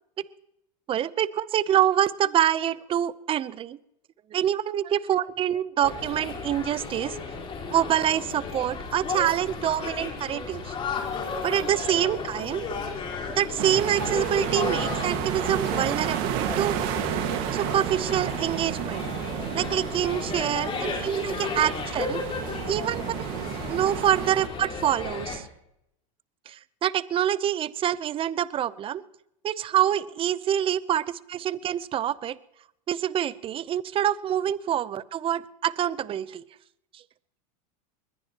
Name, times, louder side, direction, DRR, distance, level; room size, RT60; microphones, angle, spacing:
voice 1, 0.9-3.8 4.3-7.2 7.7-10.7 11.4-12.7 13.3-16.8 17.5-19.1 19.5-22.2 22.7-23.1 23.7-25.5 26.5-29.0 29.4-32.4 32.9-36.4, right 10 dB, 30° right, 18 dB, 0.7 m, -26 dB
sound 1, 5.8-25.4, left 4 dB, 30° left, 4.1 m, -34 dB
sound 2, 13.6-24.5, right 12 dB, 55° right, 1.7 m, -32 dB
21.5 x 20.5 x 3.0 m, 0.79 s
supercardioid pair, 125°, 19 cm